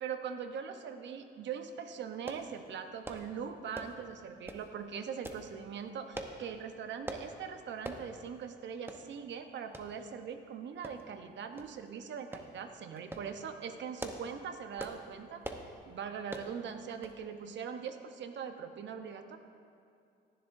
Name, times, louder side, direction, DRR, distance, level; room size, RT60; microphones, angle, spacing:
voice 1, 0.0-15.4 15.8-19.4, right 7 dB, 65° right, 7 dB, 0.9 m, -41 dB
sound 1, 2.3-2.5 3.0-3.3 3.7-4.0 4.5-4.7 5.2-5.4 6.1-6.4 7.1-7.3 7.8-8.0 8.4-8.5 8.9-9.0 9.7-9.9 10.8-11.2 11.6-11.7 12.3-12.5 13.0-13.3 13.8-14.3 14.8-15.0 15.4-15.7 16.3-16.5 17.0-17.2 17.5-17.6, right 2 dB, 10° right, 0.9 m, -42 dB
17.0 x 11.0 x 2.6 m, 2.5 s
cardioid pair, 90°, 20 cm